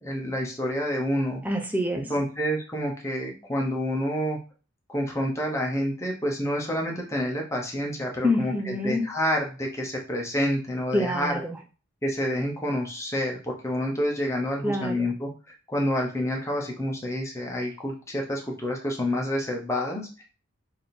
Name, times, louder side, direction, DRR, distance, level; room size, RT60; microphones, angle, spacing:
voice 1, 0.0-1.4 2.1-4.4 4.9-11.3 12.0-15.3 15.7-20.1, equal, 15° left, 0 dB, 0.8 m, -28 dB
voice 2, 1.4-2.1 8.2-9.0 10.9-11.6 14.6-15.1, left 1 dB, 10° right, 3 dB, 0.5 m, -26 dB
3.5 x 2.7 x 4.3 m, 0.35 s
head